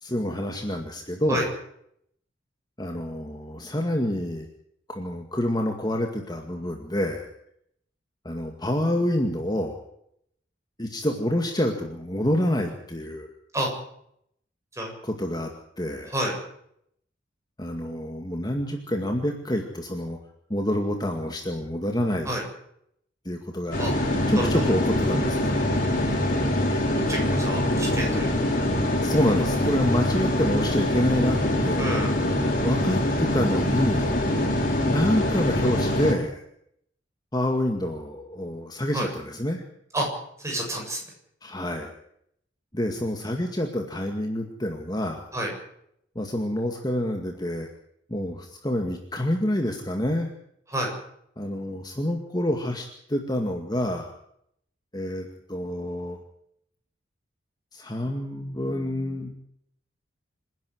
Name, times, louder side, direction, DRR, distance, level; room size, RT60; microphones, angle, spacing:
voice 1, 0.0-1.5 2.8-4.5 4.9-7.3 8.2-9.8 10.8-13.3 15.0-15.5 15.8-16.1 17.6-20.2 20.5-22.3 23.3-23.8 24.3-25.6 29.0-31.9 32.6-34.1 34.9-36.4 37.3-39.6 41.4-41.9 42.7-45.2 46.2-47.7 48.1-50.3 51.4-54.1 54.9-56.2 57.7-59.4, left 1 dB, 20° left, 3 dB, 2.1 m, -27 dB
sound 1, 23.7-36.1, left 1 dB, 45° left, 5.0 m, -24 dB
voice 2, 27.1-28.3 31.8-32.1 38.9-39.1 39.9-40.1 40.4-41.0 45.3-45.5 50.7-50.9, right 1 dB, 15° right, 0 dB, 7.6 m, -28 dB
27.0 x 11.0 x 9.5 m, 0.71 s
head